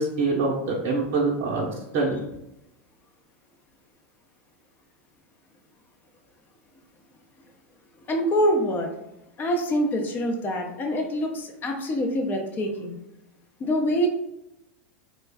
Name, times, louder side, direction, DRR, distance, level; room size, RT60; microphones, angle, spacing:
voice 1, 0.0-2.3, right 3 dB, 45° right, -3 dB, 0.7 m, -25 dB
voice 2, 8.1-8.9 9.4-12.9 13.6-14.1, equal, 30° left, 3 dB, 0.7 m, -25 dB
3.2 x 2.2 x 3.4 m, 0.87 s
hypercardioid pair, 90°, 7 cm